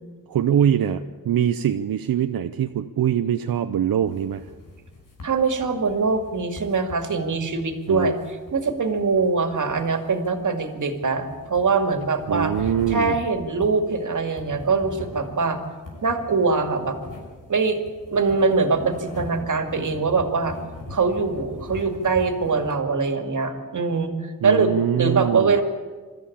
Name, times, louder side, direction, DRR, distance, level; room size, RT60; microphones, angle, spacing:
voice 1, 0.3-4.4 7.9-8.1 12.3-13.1 24.4-25.6, right 9 dB, 90° right, 7 dB, 0.7 m, -23 dB
sound 1, 4.0-22.7, left 2 dB, 70° left, 6.2 m, -41 dB
voice 2, 5.2-12.5 12.9-15.6 16.0-17.0 17.5-17.8 18.1-20.6 20.9-25.6, right 4 dB, 60° right, 6 dB, 2.3 m, -23 dB
24.0 x 13.5 x 8.6 m, 1.5 s
wide cardioid pair, 115°, 34 cm